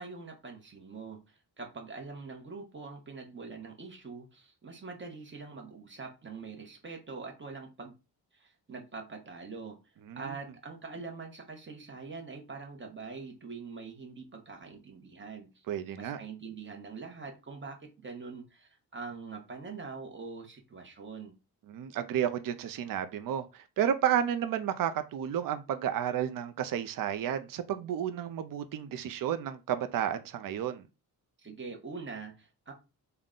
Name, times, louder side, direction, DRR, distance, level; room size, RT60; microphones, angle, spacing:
voice 1, 0.0-7.9 8.3-9.8 10.2-15.6 16.0-21.3 31.4-32.7, right 4 dB, 30° right, 0.9 m, -44 dB
voice 2, 15.7-16.2 21.7-30.8, right 9 dB, 55° right, 0.5 m, -32 dB
3.7 x 2.2 x 3.7 m
wide cardioid pair, 135°, 40 cm